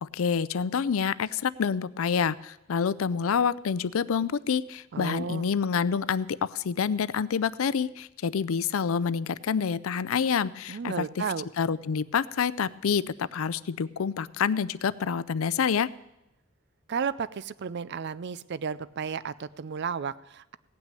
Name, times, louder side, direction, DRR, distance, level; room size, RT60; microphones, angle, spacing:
voice 1, 0.0-11.0 11.6-15.9, left 6 dB, 80° left, 19 dB, 0.5 m, -27 dB
voice 2, 4.9-5.5 10.7-11.5 16.9-20.6, right 6 dB, 55° right, 17 dB, 0.4 m, -33 dB
17.0 x 6.1 x 8.9 m, 0.90 s
head